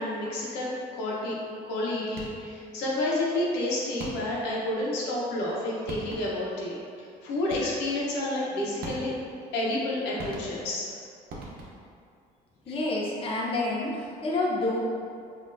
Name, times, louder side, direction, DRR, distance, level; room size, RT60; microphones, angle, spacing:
voice 1, 0.0-1.3 1.6-9.1 9.5-10.9, left 1 dB, 90° left, -5 dB, 1.0 m, -30 dB
sound 1, 2.1-2.6 4.0-4.5 5.5-5.6 5.9-6.5 7.5-8.0 8.8-9.4 10.2-10.9 11.3-12.0, right 2 dB, 65° right, 0.8 m, -40 dB
voice 2, 12.7-14.8, left 2 dB, 35° left, -4 dB, 0.7 m, -28 dB
5.4 x 2.8 x 2.6 m, 2.3 s
cardioid pair, 110°, 17 cm